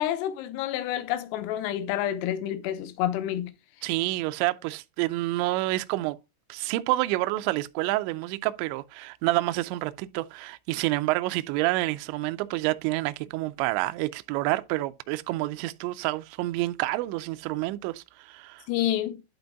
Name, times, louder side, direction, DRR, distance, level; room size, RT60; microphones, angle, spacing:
voice 1, 0.0-3.5 18.7-19.2, left 12 dB, 80° left, 2.4 m, -28 dB
voice 2, 3.8-6.2 6.5-18.6, right 18 dB, 85° right, 2.6 m, -28 dB
11.5 x 3.9 x 3.5 m
omnidirectional pair, 5.7 m